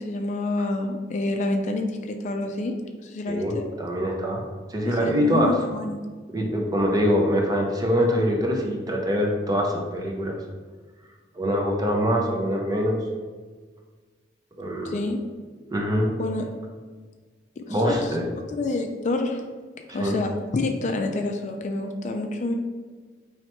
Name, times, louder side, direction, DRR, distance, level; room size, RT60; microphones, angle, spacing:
voice 1, 0.0-3.7 4.8-6.0 14.8-15.2 16.2-16.4 17.6-18.2 18.5-19.4 19.9-22.5, left 2 dB, 40° left, 4 dB, 0.3 m, -28 dB
voice 2, 3.3-4.4 4.7-5.5 6.3-10.4 11.3-13.0 14.6-15.0 15.7-16.1 17.7-18.3 19.9-20.1, equal, 20° right, 1 dB, 0.5 m, -24 dB
4.4 x 3.1 x 2.9 m, 1.5 s
head